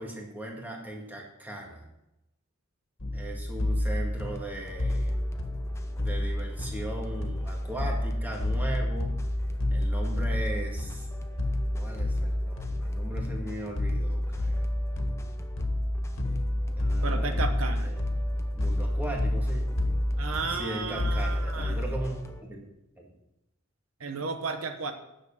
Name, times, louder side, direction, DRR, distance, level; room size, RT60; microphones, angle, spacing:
voice 1, 0.0-1.8 3.1-5.2 6.0-9.2 9.7-11.1 11.7-14.7 16.8-17.4 17.8-17.9 18.5-19.6 20.5-22.7 23.0-23.1, right 1 dB, 10° right, -1 dB, 1.9 m, -38 dB
sound 1, 3.0-22.1, left 1 dB, 70° left, 1.6 m, -29 dB
sound 2, 4.2-22.4, left 1 dB, 15° left, 0.7 m, -49 dB
voice 2, 17.0-17.9 20.2-21.8 24.0-24.9, right 4 dB, 80° right, 7 dB, 0.9 m, -33 dB
9.6 x 6.9 x 5.8 m, 0.89 s
head